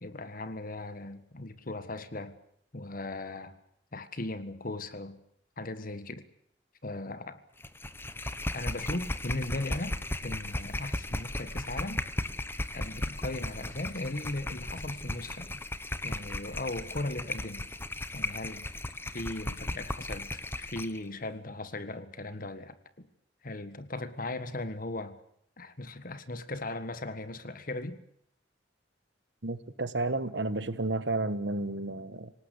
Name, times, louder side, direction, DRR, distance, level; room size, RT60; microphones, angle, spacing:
voice 1, 0.0-2.3 2.7-3.5 3.9-5.2 5.6-6.3 6.8-7.4 8.5-10.0 10.2-12.1 12.7-15.6 16.0-17.7 18.1-18.7 19.0-23.1 23.4-25.2 25.6-28.0, left 2 dB, 50° left, 1.6 m, -38 dB
sound 1, 7.6-21.0, left 1 dB, 15° left, 1.2 m, -36 dB
voice 2, 29.4-32.3, right 2 dB, 70° right, 1.5 m, -32 dB
26.5 x 18.5 x 8.4 m
head